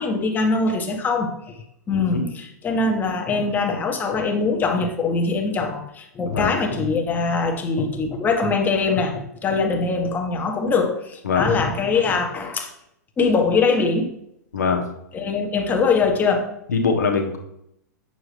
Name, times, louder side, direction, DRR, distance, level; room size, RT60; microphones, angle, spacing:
voice 1, 0.0-1.3 1.9-12.7 13.2-14.1 14.6-14.7 15.1-16.5, left 4 dB, 20° left, 3 dB, 1.3 m, -22 dB
voice 2, 1.9-2.3 6.2-6.5 11.2-11.5 14.5-14.8 16.7-17.4, left 5 dB, 70° left, 2 dB, 1.3 m, -22 dB
8.7 x 6.9 x 3.3 m, 0.78 s
figure-of-eight pair, 105°, 9 cm